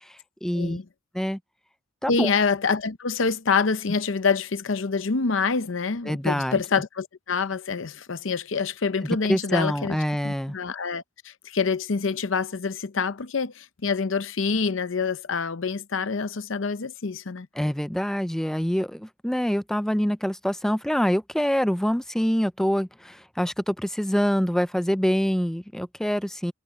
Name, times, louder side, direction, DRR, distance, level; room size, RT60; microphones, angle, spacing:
voice 1, 0.4-0.8 1.1-1.4 2.0-2.3 6.1-6.6 9.3-10.5 17.6-26.5, equal, ahead, 0.4 m, -25 dB
voice 2, 2.1-10.0 10.2-17.5, left 5 dB, 65° left, 0.7 m, -26 dB
head